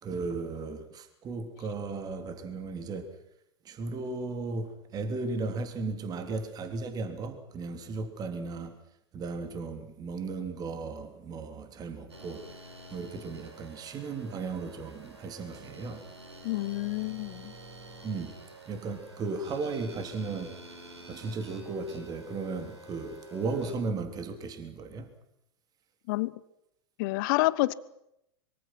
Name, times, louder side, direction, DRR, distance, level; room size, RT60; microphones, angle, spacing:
voice 1, 0.0-3.2 3.6-8.8 9.1-16.1 18.0-18.4 18.7-20.5 21.1-25.1, right 3 dB, 30° right, 3.4 m, -36 dB
sound 1, 12.1-23.7, right 2 dB, 85° right, 5.6 m, -49 dB
voice 2, 16.4-17.5 26.1-26.4 27.0-27.7, left 20 dB, 50° left, 1.1 m, -28 dB
24.5 x 24.0 x 6.1 m
figure-of-eight pair, 100°, 14 cm